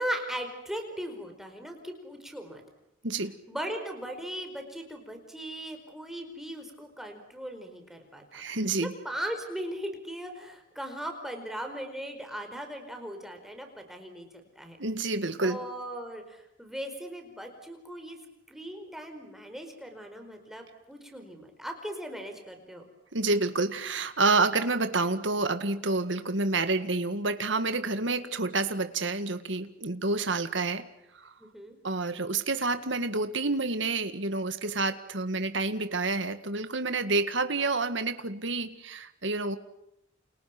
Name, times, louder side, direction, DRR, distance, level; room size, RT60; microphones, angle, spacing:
voice 1, 0.0-2.6 3.5-14.8 15.4-18.2 18.5-22.8 27.9-28.0 31.4-31.8, equal, ahead, 4 dB, 4.9 m, -38 dB
voice 2, 3.0-3.4 8.3-8.9 14.8-15.6 23.1-30.8 31.1-31.3 31.8-39.6, right 3 dB, 65° right, 9 dB, 2.0 m, -28 dB
29.5 x 29.5 x 6.1 m, 0.84 s
head